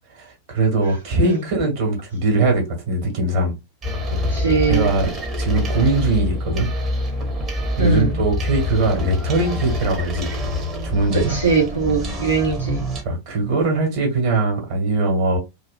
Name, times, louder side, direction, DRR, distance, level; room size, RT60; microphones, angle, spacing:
voice 1, 0.1-3.6 4.7-5.1 5.4-6.7 7.8-10.3 10.8-11.4 13.0-15.4, right 2 dB, 45° right, 1.6 m, -21 dB
sound 1, 3.8-13.0, left 1 dB, 30° right, 1.0 m, -26 dB
voice 2, 4.3-5.0 5.6-5.7 7.8-8.2 11.1-12.8, right 4 dB, 85° right, 1.4 m, -21 dB
2.7 x 2.5 x 2.3 m
figure-of-eight pair, 90°, 0 cm